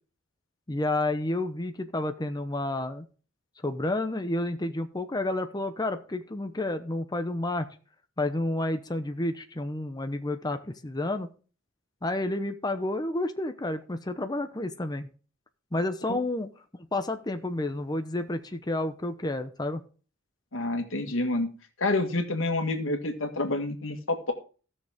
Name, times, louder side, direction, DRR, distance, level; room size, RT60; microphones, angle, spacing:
voice 1, 0.7-3.0 3.6-7.7 8.2-11.3 12.0-15.1 15.7-16.5 16.9-19.8, left 2 dB, 20° left, 8 dB, 0.9 m, -30 dB
voice 2, 20.5-21.5 21.8-24.3, left 2 dB, 90° left, 6 dB, 1.9 m, -28 dB
16.0 x 6.6 x 3.6 m, 0.36 s
head